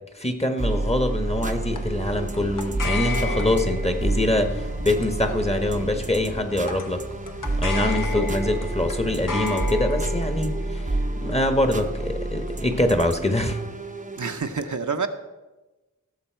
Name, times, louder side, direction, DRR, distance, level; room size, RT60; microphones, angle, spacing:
voice 1, 0.1-7.0 7.6-10.8 11.2-13.6, left 1 dB, 20° left, 1.2 m, -24 dB
sound 1, 0.6-14.4, right 2 dB, 25° right, 0.7 m, -29 dB
sound 2, 1.2-10.1, left 1 dB, 55° left, 3.6 m, -41 dB
sound 3, 1.8-14.3, left 4 dB, 85° left, 1.0 m, -35 dB
voice 2, 7.9-8.2 8.5-8.7 14.2-15.1, right 5 dB, 70° right, 0.8 m, -29 dB
16.5 x 7.0 x 4.5 m
wide cardioid pair, 45°, 31 cm